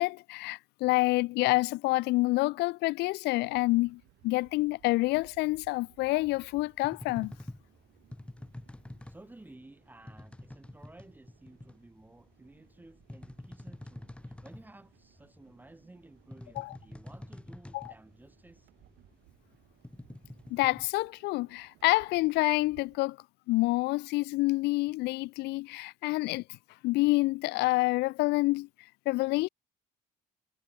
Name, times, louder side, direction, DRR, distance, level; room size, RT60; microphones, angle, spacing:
voice 1, 0.0-7.3 16.6-16.8 17.7-17.9 20.5-23.2 23.5-26.6 26.8-28.7 29.1-29.5, left 21 dB, 85° left, 0.6 m, -28 dB
sound 1, 3.4-23.0, right 19 dB, 85° right, 5.1 m, -63 dB
sound 2, 6.5-20.9, left 1 dB, 5° left, 1.8 m, -48 dB
voice 2, 9.1-18.7, right 2 dB, 10° right, 4.3 m, -54 dB
cardioid pair, 110°, 17 cm